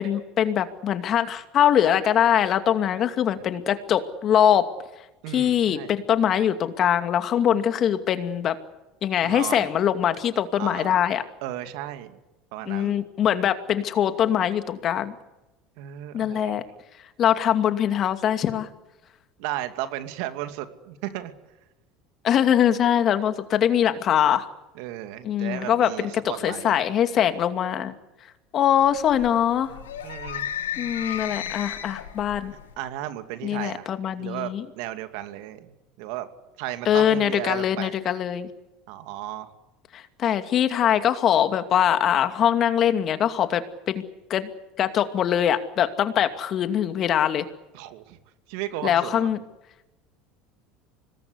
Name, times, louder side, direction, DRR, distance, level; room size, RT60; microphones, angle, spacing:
voice 1, 0.0-4.7 5.3-8.6 9.0-11.2 12.7-15.1 16.1-16.6 17.2-18.7 22.2-24.5 25.2-25.9 26.4-27.9 28.5-29.7 30.8-32.5 33.4-34.6 36.9-38.5 39.9-44.0 44.3-44.5 44.8-47.4 48.8-49.4, left 9 dB, 45° left, 9 dB, 2.4 m, -22 dB
voice 2, 5.2-6.0 9.2-9.7 10.5-11.0 11.4-12.2 12.5-13.0 15.8-16.6 19.4-21.3 24.7-26.8 30.0-30.5 32.8-35.7 36.0-36.3 36.6-37.9 38.9-39.5 47.7-48.2 48.5-49.3, right 13 dB, 70° right, 9 dB, 2.5 m, -34 dB
sound 1, 28.8-32.7, left 9 dB, 90° left, 3.0 m, -34 dB
25.5 x 20.0 x 8.3 m, 1.0 s
hypercardioid pair, 85°, 0 cm